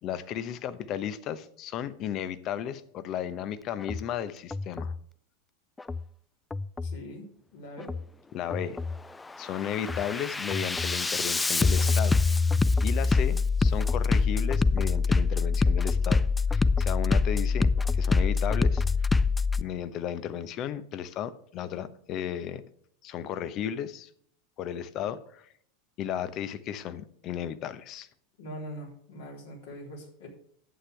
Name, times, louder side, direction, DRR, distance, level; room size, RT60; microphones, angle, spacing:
voice 1, 0.0-4.9 8.3-8.8 9.4-12.2 12.8-16.2 16.5-18.8 19.6-22.6 23.0-24.1 24.6-25.5 26.0-28.1, left 10 dB, 45° left, 13 dB, 0.8 m, -34 dB
Bass drum, 3.8-4.0 4.5-5.0 5.8-6.0 6.5-7.0 7.8-8.0 8.5-9.0 9.4-19.6, left 4 dB, 15° left, 0.3 m, -25 dB
voice 2, 6.8-7.9 28.4-30.3, equal, 70° left, -1 dB, 3.7 m, -42 dB
11.0 x 8.4 x 3.4 m, 0.65 s
figure-of-eight pair, 85°, 0 cm